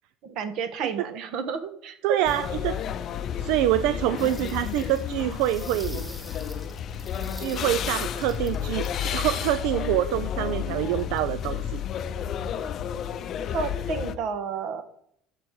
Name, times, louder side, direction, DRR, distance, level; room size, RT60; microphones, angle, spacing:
voice 1, 0.2-2.2 13.5-14.8, right 6 dB, 55° right, 9 dB, 1.3 m, -31 dB
voice 2, 2.0-2.7 3.4-6.0 7.4-11.8, right 13 dB, 75° right, 13 dB, 0.5 m, -26 dB
sound 1, 2.2-14.2, left 9 dB, 40° left, 0.6 m, -31 dB
sound 2, 4.2-9.1 10.9-11.4, left 1 dB, ahead, 1.4 m, -47 dB
11.5 x 7.4 x 4.8 m, 0.72 s
cardioid pair, 150°, 0 cm